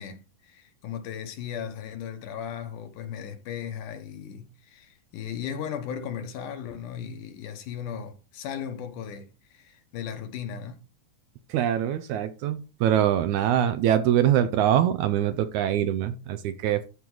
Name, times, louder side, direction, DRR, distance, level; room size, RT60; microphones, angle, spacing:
voice 1, 0.0-10.8, left 8 dB, 75° left, 2.6 m, -36 dB
voice 2, 11.5-16.9, right 10 dB, 75° right, 1.9 m, -23 dB
13.0 x 4.6 x 3.9 m
omnidirectional pair, 3.8 m